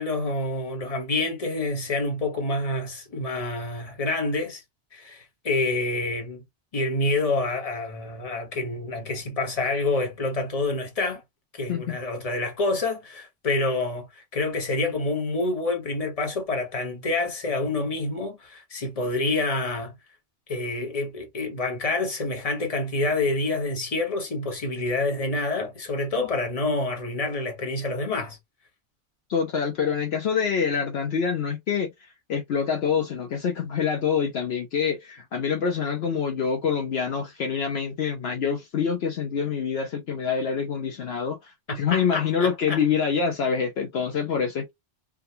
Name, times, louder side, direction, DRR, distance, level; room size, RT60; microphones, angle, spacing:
voice 1, 0.0-4.6 4.9-6.4 6.7-11.2 11.6-19.9 20.5-28.4 41.7-42.8, left 2 dB, 35° left, 1.1 m, -27 dB
voice 2, 29.3-44.7, left 6 dB, 65° left, 0.9 m, -26 dB
3.6 x 2.2 x 2.7 m
omnidirectional pair, 1.2 m